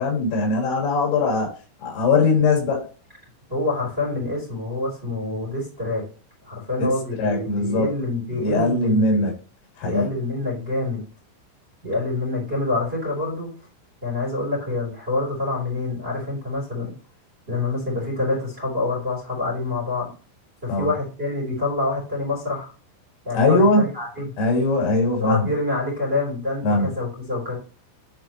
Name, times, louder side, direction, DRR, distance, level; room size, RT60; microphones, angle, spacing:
voice 1, 0.0-1.5 1.8-2.8 7.2-7.9 8.4-9.3 9.8-10.1 20.7-20.9 23.3-23.9 24.4-25.5 26.6-26.9, left 3 dB, 85° left, 0 dB, 5.3 m, -20 dB
voice 2, 3.5-6.0 6.4-9.3 9.8-11.0 11.8-13.5 14.0-16.9 17.5-20.1 20.6-22.7 23.2-24.3 25.2-27.6, left 2 dB, 15° right, -3 dB, 2.7 m, -26 dB
11.0 x 4.2 x 3.0 m, 0.36 s
omnidirectional pair, 5.8 m